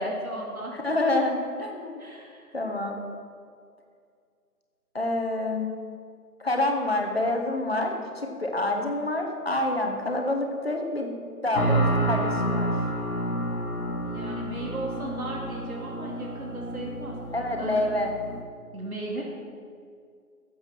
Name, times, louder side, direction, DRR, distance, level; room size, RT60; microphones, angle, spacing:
voice 1, 0.0-1.1 2.0-2.5 13.8-17.2 17.6-17.8 18.7-19.2, right 2 dB, 65° right, -2 dB, 2.9 m, -36 dB
voice 2, 0.7-2.0 2.5-3.0 4.9-5.7 6.4-11.1 11.4-12.7 17.3-18.1, left 2 dB, 40° left, 2 dB, 1.6 m, -27 dB
sound 1, 11.5-18.4, right 1 dB, 70° left, 2.4 m, -29 dB
15.5 x 7.8 x 6.0 m, 2.2 s
figure-of-eight pair, 165°, 46 cm